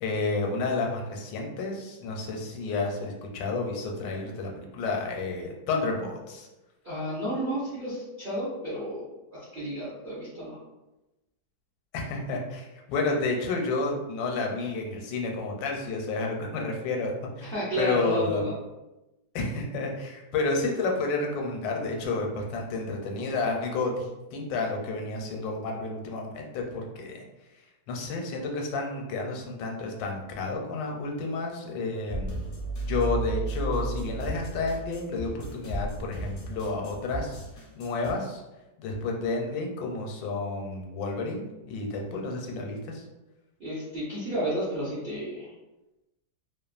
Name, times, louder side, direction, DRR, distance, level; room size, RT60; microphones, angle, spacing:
voice 1, 0.0-6.5 11.9-18.4 19.3-27.2 27.9-32.3 32.8-37.4 37.8-38.4 38.8-43.0, left 3 dB, 85° left, 1 dB, 1.3 m, -31 dB
voice 2, 6.8-10.6 17.4-18.5 43.6-45.5, equal, 55° right, -10 dB, 0.6 m, -32 dB
sound 1, 32.1-38.1, right 2 dB, 60° left, 0.5 m, -34 dB
2.9 x 2.3 x 2.3 m, 1.0 s
omnidirectional pair, 1.9 m